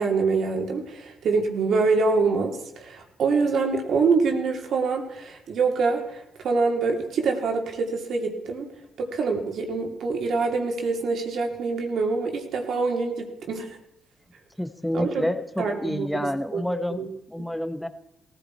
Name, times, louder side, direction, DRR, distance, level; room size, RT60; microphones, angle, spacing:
voice 1, 0.0-8.7 9.0-13.8 14.9-15.3 15.6-16.6 16.9-17.1 17.4-17.5, right 4 dB, 60° right, 3 dB, 2.7 m, -25 dB
voice 2, 14.6-17.9, left 1 dB, 5° left, 10 dB, 1.3 m, -29 dB
18.5 x 15.0 x 4.5 m, 0.87 s
hypercardioid pair, 50°, 0 cm